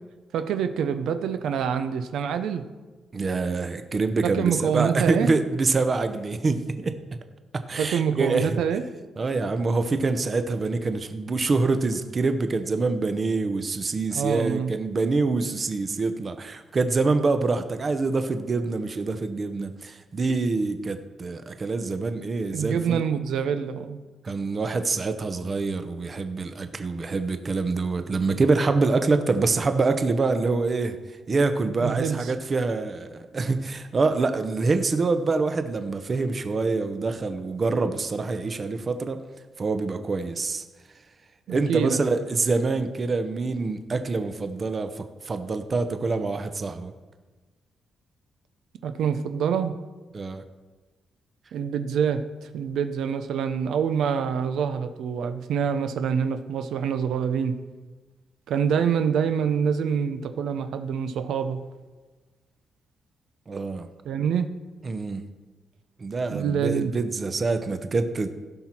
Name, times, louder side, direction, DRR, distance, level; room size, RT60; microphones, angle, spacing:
voice 1, 0.3-2.6 4.2-5.3 7.8-8.8 14.1-14.7 22.5-24.0 31.8-32.3 41.5-42.0 48.8-49.7 51.5-57.6 58.5-61.6 64.0-64.5 66.3-66.9, right 7 dB, 80° right, 9 dB, 0.7 m, -26 dB
voice 2, 3.1-7.0 7.5-8.5 9.2-23.0 24.2-31.0 31.3-39.2 39.6-40.6 41.5-46.9 50.1-50.4 63.5-63.9 64.8-65.3 66.0-68.3, right 3 dB, 30° right, 9 dB, 0.7 m, -25 dB
15.5 x 6.0 x 4.4 m, 1.3 s
cardioid pair, 135°, 0 cm